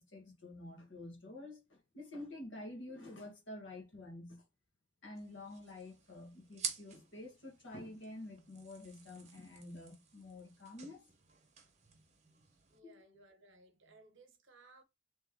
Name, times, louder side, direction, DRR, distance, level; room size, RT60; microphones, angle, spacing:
voice 1, 0.0-4.4 5.0-11.1 12.8-13.0, left 2 dB, 80° left, 1.5 m, -49 dB
sound 1, 5.1-12.8, right 7 dB, 35° right, 0.8 m, -49 dB
voice 2, 12.7-14.8, right 3 dB, 80° right, 1.0 m, -62 dB
3.2 x 3.1 x 3.5 m
head